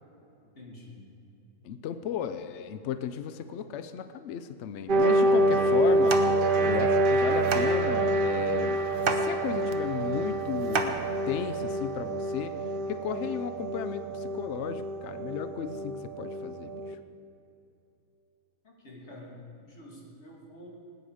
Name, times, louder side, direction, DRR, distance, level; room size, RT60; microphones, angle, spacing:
voice 1, 0.5-1.0 18.6-20.7, left 1 dB, 40° left, -4 dB, 3.0 m, -48 dB
voice 2, 1.6-6.2 6.6-8.8 9.1-12.5 12.9-17.0, left 8 dB, 70° left, 10 dB, 0.6 m, -35 dB
sound 1, 4.9-16.9, right 1 dB, 70° right, 0.5 m, -27 dB
sound 2, 5.2-11.6, right 4 dB, 40° right, 1.0 m, -35 dB
19.5 x 9.5 x 4.9 m, 2.8 s
omnidirectional pair, 1.8 m